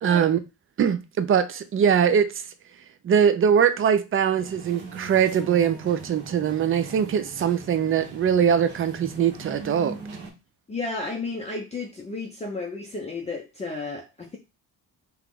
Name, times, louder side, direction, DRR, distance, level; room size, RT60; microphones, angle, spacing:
voice 1, 0.0-0.4 0.8-2.3 3.0-10.0, right 8 dB, 35° right, 0.4 m, -22 dB
sound 1, 4.3-10.3, right 3 dB, 75° right, 1.2 m, -40 dB
voice 2, 10.7-14.4, left 3 dB, 15° left, 0.5 m, -33 dB
3.0 x 2.3 x 3.6 m
cardioid pair, 100°, 41 cm